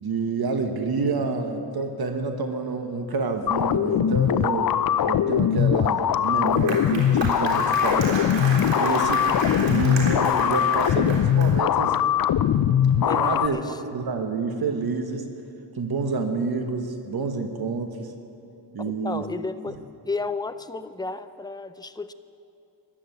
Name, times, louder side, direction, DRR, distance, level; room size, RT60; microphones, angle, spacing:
voice 1, 0.0-4.7 5.0-8.3 8.8-12.0 12.9-13.6 13.9-15.3 15.8-18.1 18.7-19.2, right 4 dB, 60° right, 5 dB, 1.3 m, -28 dB
sound 1, 3.5-13.5, left 10 dB, 55° left, 0.5 m, -21 dB
Applause, 6.2-11.7, right 2 dB, 80° right, 3.6 m, -32 dB
voice 2, 13.1-13.8 18.8-19.8 20.0-22.1, left 3 dB, 10° left, 11 dB, 0.6 m, -33 dB
14.5 x 11.5 x 8.0 m, 2.7 s
cardioid pair, 85°, 43 cm